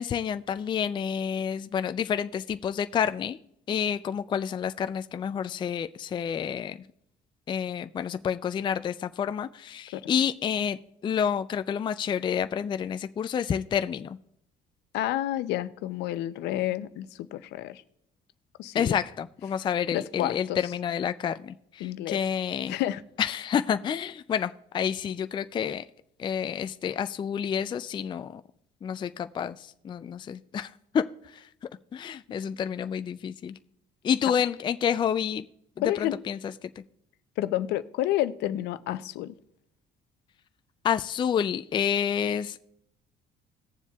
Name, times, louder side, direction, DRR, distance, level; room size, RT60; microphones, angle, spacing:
voice 1, 0.0-3.4 3.7-6.8 7.5-14.2 18.7-22.8 23.2-25.8 26.2-28.4 28.8-31.4 31.9-33.5 34.0-35.5 36.0-36.7 40.8-42.6, left 8 dB, 30° left, 11 dB, 0.3 m, -29 dB
voice 2, 14.9-17.8 18.6-19.0 19.9-20.6 21.8-22.2 22.7-23.0 35.8-36.2 37.4-39.3, left 14 dB, 85° left, 14 dB, 0.6 m, -30 dB
19.0 x 7.2 x 2.3 m, 0.76 s
cardioid pair, 110°, 17 cm